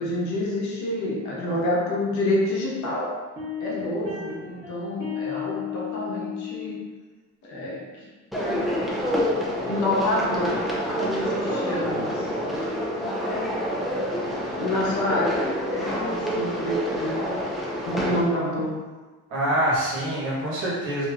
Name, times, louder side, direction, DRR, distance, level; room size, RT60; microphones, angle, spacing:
voice 1, 0.0-3.1 3.6-6.8 7.5-8.1 9.7-10.6 11.0-12.3 14.5-17.1 17.9-18.7, left 1 dB, 70° left, -4 dB, 1.0 m, -27 dB
sound 1, 3.4-6.8, left 8 dB, 15° right, 1.1 m, -34 dB
sound 2, 8.3-18.2, equal, ahead, 0.5 m, -27 dB
voice 2, 19.3-21.1, right 1 dB, 85° right, -7 dB, 1.3 m, -25 dB
3.0 x 2.8 x 2.3 m, 1.3 s
cardioid pair, 120°, 30 cm